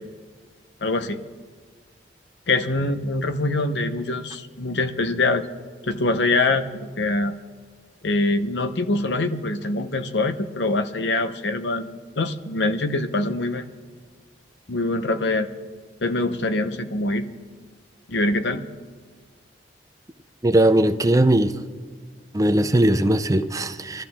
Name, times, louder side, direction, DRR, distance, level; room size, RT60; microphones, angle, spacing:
voice 1, 0.8-1.2 2.5-5.5 5.8-7.3 8.0-11.9 12.2-13.7 14.7-15.5 16.0-17.2 18.1-18.6, left 2 dB, 70° left, 0.9 m, -24 dB
voice 2, 20.4-21.6 22.3-24.0, right 1 dB, 20° right, 0.5 m, -19 dB
25.5 x 13.5 x 3.6 m
head